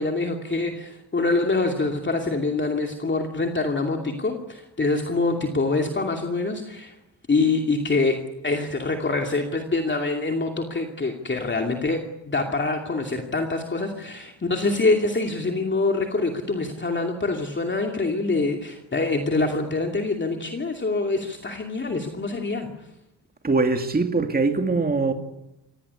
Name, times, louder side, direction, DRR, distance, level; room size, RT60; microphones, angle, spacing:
voice 1, 0.0-6.9 7.3-22.7, left 3 dB, 25° left, 2.6 m, -25 dB
voice 2, 23.4-25.1, right 3 dB, 20° right, 2.1 m, -22 dB
25.5 x 18.5 x 9.8 m
wide cardioid pair, 135°, 43 cm